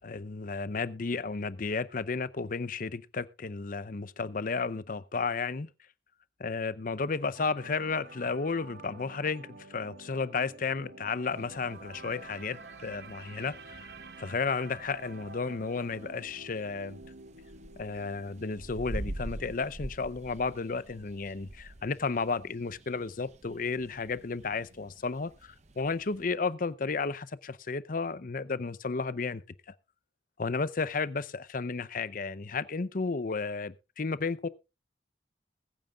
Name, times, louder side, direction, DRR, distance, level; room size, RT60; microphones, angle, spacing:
voice 1, 0.0-5.7 6.4-13.9 14.2-17.0 17.8-29.4 29.7-29.8 30.4-34.5, left 4 dB, 50° left, 0.6 m, -33 dB
sound 1, 7.3-21.5 21.8-22.0, right 3 dB, 65° right, 1.1 m, -50 dB
sound 2, 11.3-26.2, right 1 dB, 40° right, 0.9 m, -46 dB
21.0 x 9.1 x 2.4 m
head